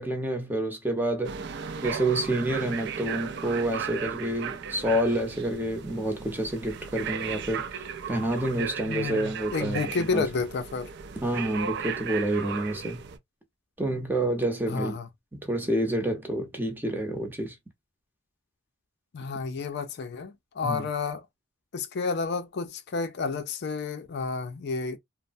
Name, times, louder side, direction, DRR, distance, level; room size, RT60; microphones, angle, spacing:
voice 1, 0.0-1.4 1.8-10.2 11.2-13.0 13.8-15.0 15.3-17.5 20.6-20.8, right 1 dB, 10° right, 0.7 m, -28 dB
sound 1, 1.2-13.2, right 7 dB, 60° right, 0.4 m, -36 dB
voice 2, 8.8-10.9 14.7-15.1 19.1-21.2 21.7-25.0, left 4 dB, 55° left, 0.4 m, -31 dB
3.1 x 2.0 x 2.5 m
head